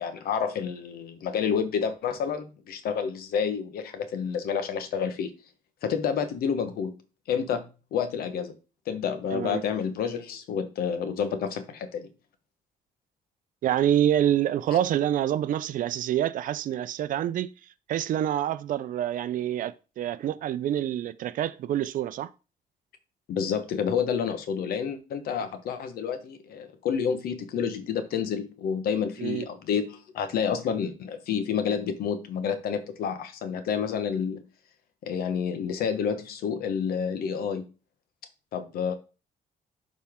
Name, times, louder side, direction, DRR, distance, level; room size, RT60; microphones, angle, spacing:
voice 1, 0.0-5.3 5.8-6.9 7.3-7.6 7.9-8.5 8.9-12.1 14.7-14.8 23.3-34.4 35.0-37.7 38.5-39.0, left 7 dB, 85° left, 1.3 m, -29 dB
voice 2, 9.3-9.6 13.6-17.5 17.9-22.3 29.2-29.5, right 11 dB, 60° right, 0.5 m, -27 dB
11.5 x 4.4 x 3.6 m
cardioid pair, 160°, 15 cm